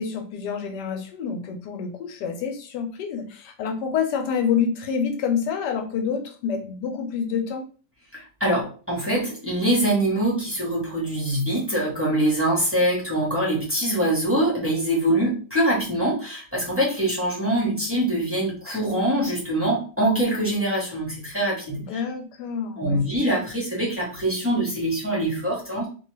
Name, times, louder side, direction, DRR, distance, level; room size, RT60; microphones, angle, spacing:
voice 1, 0.0-7.6 21.8-23.0, left 6 dB, 80° left, 5 dB, 1.2 m, -27 dB
voice 2, 8.1-21.8 22.8-25.9, right 1 dB, 15° right, -5 dB, 0.4 m, -24 dB
2.7 x 2.3 x 3.1 m, 0.39 s
omnidirectional pair, 1.8 m